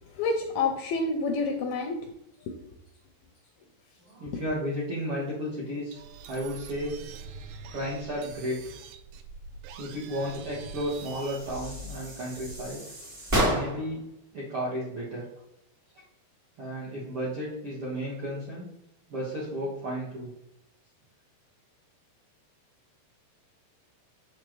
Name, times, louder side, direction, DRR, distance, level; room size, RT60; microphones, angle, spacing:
voice 1, 0.1-2.1 4.3-4.4, left 3 dB, 85° left, 3 dB, 2.1 m, -28 dB
voice 2, 4.1-6.0 6.2-7.0 7.7-8.7 9.8-12.8 13.5-14.0 14.3-15.2 16.6-18.7 19.1-20.3, equal, 65° right, -8 dB, 1.4 m, -33 dB
sound 1, 5.9-12.7, right 4 dB, 80° right, 2.6 m, -44 dB
sound 2, 10.9-14.0, equal, 35° right, 0.9 m, -31 dB
7.0 x 6.6 x 3.1 m, 0.79 s
omnidirectional pair, 4.8 m